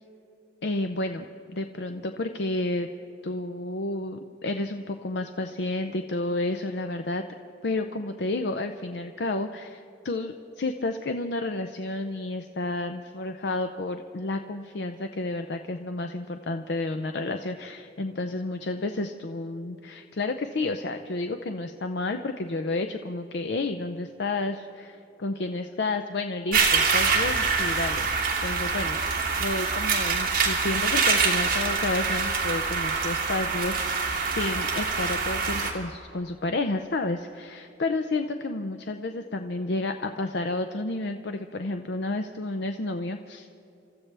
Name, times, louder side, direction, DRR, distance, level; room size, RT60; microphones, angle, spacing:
voice 1, 0.6-2.9 3.2-7.2 7.6-28.1 28.4-29.0 29.4-43.5, left 2 dB, 80° left, 7 dB, 0.6 m, -31 dB
sound 1, 26.5-35.7, right 5 dB, 50° right, 2.6 m, -25 dB
27.5 x 14.5 x 3.4 m, 2.8 s
head